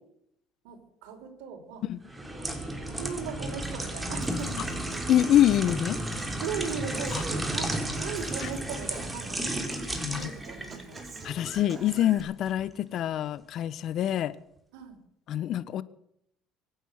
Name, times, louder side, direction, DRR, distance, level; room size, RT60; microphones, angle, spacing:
voice 1, 0.6-1.8 2.3-2.5 2.9-4.5 6.4-9.6 10.1-11.1 14.7-15.0, right 6 dB, 80° right, 4.6 m, -38 dB
sound 1, 2.1-12.0 12.5-12.6, right 1 dB, 15° right, 3.6 m, -34 dB
Human voice / Acoustic guitar, 4.2-12.2, right 3 dB, 30° right, 3.6 m, -43 dB
voice 2, 5.1-6.0 7.1-7.2 8.4-8.5 10.0-10.3 11.2-14.3 15.3-15.8, left 11 dB, 55° left, 1.0 m, -25 dB
24.5 x 9.1 x 6.5 m
supercardioid pair, 90°, 0 cm